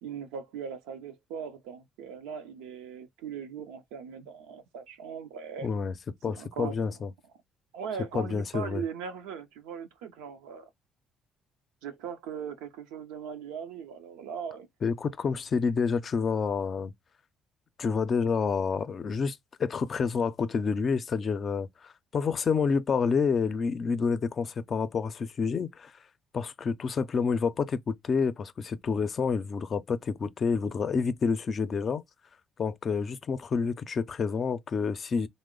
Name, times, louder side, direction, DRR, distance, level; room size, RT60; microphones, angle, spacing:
voice 1, 0.0-5.7 6.3-7.0 7.7-10.7 11.8-14.7, right 7 dB, 90° right, 0.6 m, -39 dB
voice 2, 5.6-5.9 6.2-7.1 8.1-8.8 14.8-16.9 17.8-25.9 26.3-32.0 32.6-35.3, left 5 dB, 45° left, 0.5 m, -28 dB
3.1 x 2.0 x 3.6 m
supercardioid pair, 70°, 0 cm